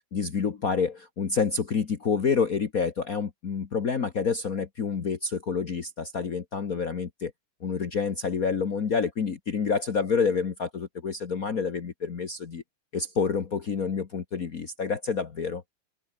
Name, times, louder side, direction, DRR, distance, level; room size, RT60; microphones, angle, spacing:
voice 1, 0.1-7.3 7.6-12.6 12.9-15.6, left 5 dB, 45° left, 1.8 m, -28 dB
omnidirectional pair, 2.4 m